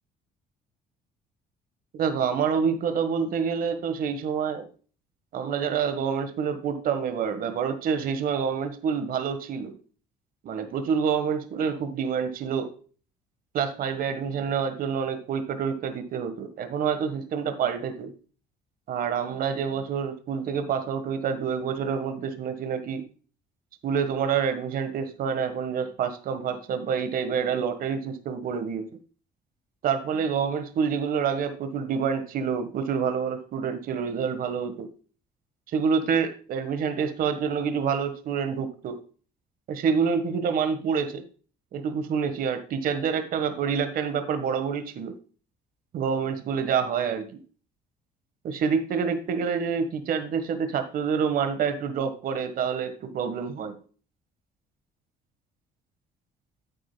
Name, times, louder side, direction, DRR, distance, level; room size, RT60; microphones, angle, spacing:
voice 1, 1.9-4.7 5.3-9.7 10.4-12.7 13.5-18.1 18.9-23.0 23.8-28.9 29.8-34.9 35.7-39.0 39.7-41.2 41.7-45.1 45.9-47.4 48.4-53.8, right 6 dB, 60° right, 9 dB, 1.4 m, -27 dB
10.0 x 8.7 x 2.3 m, 0.39 s
cardioid pair, 110°, 17 cm